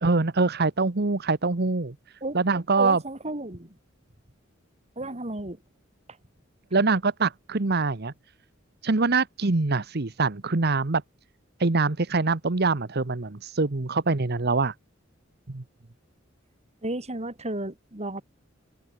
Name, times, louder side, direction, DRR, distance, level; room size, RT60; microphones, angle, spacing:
voice 1, 0.0-1.9 2.3-3.0 6.7-8.1 8.8-11.0 11.6-14.7 15.5-15.6, right 3 dB, 55° right, 1.1 m, -24 dB
voice 2, 2.8-3.8 4.9-5.6 16.8-18.2, right 2 dB, 35° right, 3.5 m, -33 dB
open air
head